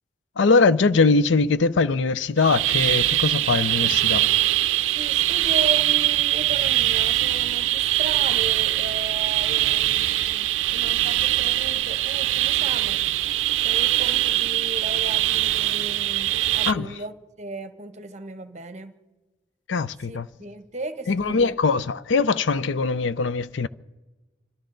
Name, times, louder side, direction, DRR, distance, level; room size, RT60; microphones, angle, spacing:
voice 1, 0.4-4.3 16.7-17.0 19.7-20.3 21.1-23.7, left 4 dB, 80° left, 0.5 m, -21 dB
sound 1, 2.4-16.7, right 14 dB, 90° right, 0.4 m, -22 dB
voice 2, 4.8-13.0 13.6-18.9 20.1-21.5, right 2 dB, 35° right, 1.0 m, -36 dB
27.0 x 13.0 x 3.9 m
head